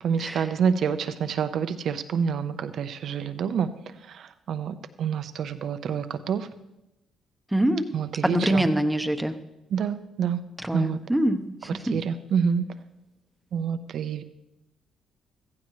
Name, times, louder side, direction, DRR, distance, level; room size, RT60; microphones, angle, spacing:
voice 1, 0.0-3.7 4.0-6.5 7.9-8.7 9.7-10.4 10.7-11.0 11.9-12.6 13.5-14.2, right 7 dB, 70° right, 10 dB, 0.9 m, -27 dB
voice 2, 7.5-7.8 8.2-9.3 10.6-11.9, right 1 dB, 5° right, 8 dB, 1.0 m, -24 dB
15.5 x 15.0 x 3.2 m, 0.95 s
cardioid pair, 90°, 0 cm